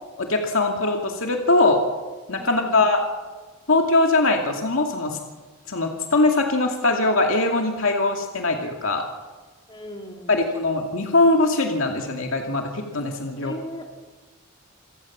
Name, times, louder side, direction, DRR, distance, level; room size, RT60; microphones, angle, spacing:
voice 1, 0.2-1.8 2.3-3.0 3.7-5.2 5.7-9.0 10.3-13.5, left 2 dB, 70° left, 3 dB, 2.4 m, -21 dB
voice 2, 2.4-2.8 9.7-10.3 13.4-13.8, equal, 20° left, 2 dB, 2.4 m, -37 dB
27.5 x 16.5 x 7.3 m, 1.3 s
head